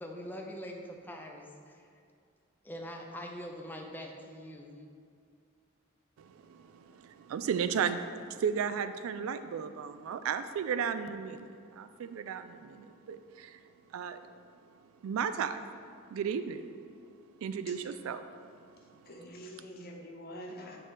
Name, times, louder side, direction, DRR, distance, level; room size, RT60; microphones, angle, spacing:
voice 1, 0.0-1.9 2.6-4.7, equal, 10° left, 1 dB, 0.5 m, -43 dB
voice 2, 6.2-8.0 8.3-13.6 13.9-14.2 15.0-15.6 16.1-16.7 17.4-18.2, right 7 dB, 85° right, 11 dB, 0.3 m, -34 dB
voice 3, 19.0-20.8, equal, 50° left, 0 dB, 0.8 m, -46 dB
8.2 x 3.8 x 3.9 m, 2.3 s
head